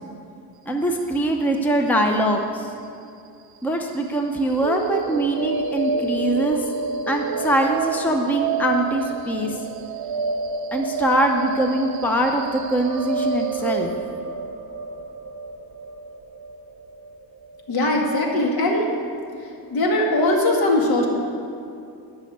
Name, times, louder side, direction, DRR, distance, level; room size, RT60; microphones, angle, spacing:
voice 1, 0.7-2.7 3.6-6.6 7.1-9.6 10.7-13.9, right 1 dB, 5° left, 3 dB, 0.7 m, -22 dB
sound 1, 4.6-18.6, right 5 dB, 65° right, 0.7 m, -29 dB
voice 2, 17.7-18.9 19.7-21.1, left 1 dB, 65° left, 0 dB, 2.3 m, -20 dB
12.0 x 6.3 x 9.4 m, 2.6 s
wide cardioid pair, 170°, 39 cm